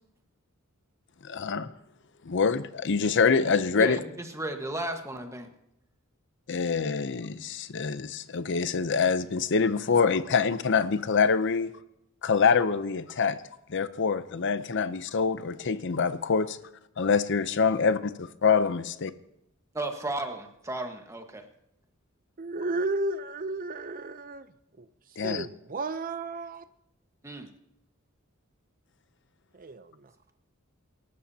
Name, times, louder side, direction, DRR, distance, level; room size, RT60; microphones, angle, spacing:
voice 1, 1.2-1.7 2.2-4.0 6.5-11.8 12.2-13.4 13.7-16.6 17.0-19.1 25.2-25.5, left 5 dB, 60° left, 0.7 m, -25 dB
voice 2, 3.8-5.5 19.7-21.5 27.2-27.5, right 1 dB, 15° right, 1.4 m, -34 dB
voice 3, 22.4-24.5 24.8-26.6 29.5-30.1, right 2 dB, 40° right, 0.6 m, -33 dB
25.5 x 13.0 x 2.8 m
head